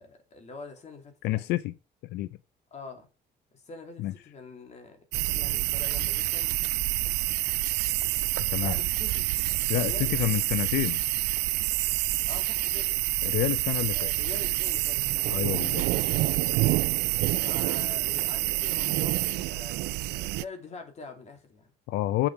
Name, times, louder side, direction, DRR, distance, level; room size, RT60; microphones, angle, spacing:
voice 1, 0.0-1.5 2.7-3.1 3.5-6.5 8.6-9.2 9.7-10.3 12.2-13.1 13.9-16.2 17.2-21.7, left 4 dB, 40° left, 2.8 m, -45 dB
voice 2, 1.2-1.7 2.0-2.3 4.0-4.1 8.5-8.8 9.7-11.0 13.2-14.1 15.3-15.8 21.9-22.3, left 16 dB, 80° left, 0.4 m, -28 dB
sound 1, 5.1-20.4, right 19 dB, 80° right, 0.4 m, -27 dB
8.0 x 7.1 x 4.8 m
cardioid pair, 110°, 17 cm